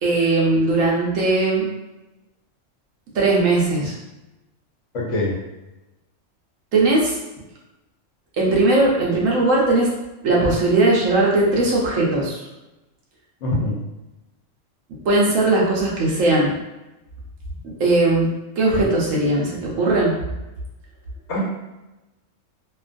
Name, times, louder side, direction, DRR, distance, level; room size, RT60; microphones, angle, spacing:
voice 1, 0.0-1.7 3.1-4.0 6.7-7.2 8.4-9.9 10.2-12.4 15.0-16.5 17.8-18.3 18.6-20.2, right 2 dB, 80° right, -3 dB, 1.1 m, -18 dB
voice 2, 4.9-5.3 13.4-13.7 21.3-21.4, left 1 dB, 75° left, -5 dB, 1.1 m, -23 dB
2.9 x 2.3 x 2.5 m, 1.0 s
omnidirectional pair, 1.3 m